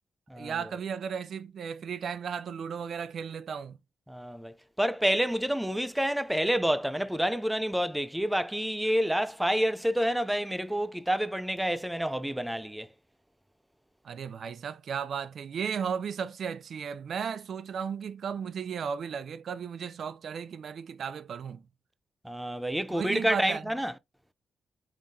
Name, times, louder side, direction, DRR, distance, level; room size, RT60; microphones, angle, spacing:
voice 1, 0.4-3.8 14.0-21.6 22.9-23.6, right 7 dB, 65° right, 0.4 m, -35 dB
voice 2, 4.1-12.9 22.2-23.9, equal, 5° right, 0.4 m, -28 dB
5.0 x 3.6 x 2.6 m
cardioid pair, 80°, 0 cm